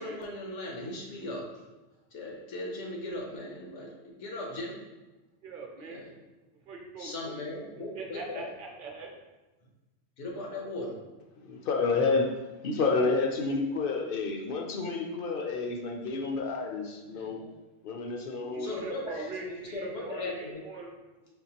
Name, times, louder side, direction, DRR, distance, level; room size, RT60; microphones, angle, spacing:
voice 1, 0.0-1.6 2.1-4.8 5.8-6.1 7.0-8.4 10.2-11.0 17.0-17.5 18.6-20.7, left 2 dB, 80° left, -1 dB, 1.2 m, -38 dB
voice 2, 5.4-6.1 6.7-7.4 7.8-9.1 18.5-20.9, right 3 dB, 50° right, 1 dB, 0.8 m, -42 dB
voice 3, 11.4-12.3 12.6-17.4 17.8-18.8, left 4 dB, 55° left, 2 dB, 0.7 m, -29 dB
4.5 x 3.6 x 2.8 m, 1.1 s
omnidirectional pair, 1.2 m